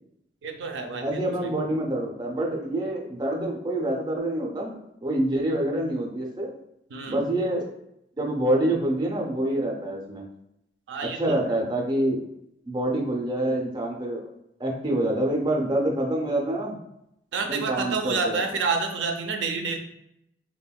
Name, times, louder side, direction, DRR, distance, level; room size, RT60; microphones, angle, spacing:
voice 1, 0.4-1.5 6.9-7.3 10.9-11.6 17.3-19.8, right 4 dB, 85° right, 5 dB, 0.4 m, -29 dB
voice 2, 1.0-6.5 7.1-7.7 8.2-10.3 11.0-12.2 12.7-14.2 14.6-16.7 17.5-18.4, right 1 dB, 25° right, 0 dB, 0.4 m, -26 dB
3.3 x 2.1 x 2.2 m, 0.80 s
head